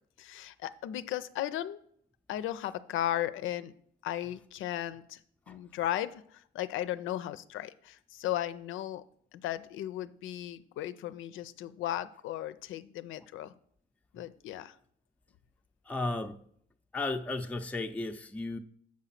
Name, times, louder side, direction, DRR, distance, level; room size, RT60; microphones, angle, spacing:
voice 1, 0.2-1.8 2.3-3.7 4.0-5.2 5.5-9.0 9.3-13.5 14.1-14.7, left 12 dB, 80° left, 0.5 m, -36 dB
voice 2, 15.8-16.4 16.9-18.6, left 2 dB, 5° left, 0.5 m, -34 dB
7.4 x 4.9 x 5.8 m
cardioid pair, 90°, 20 cm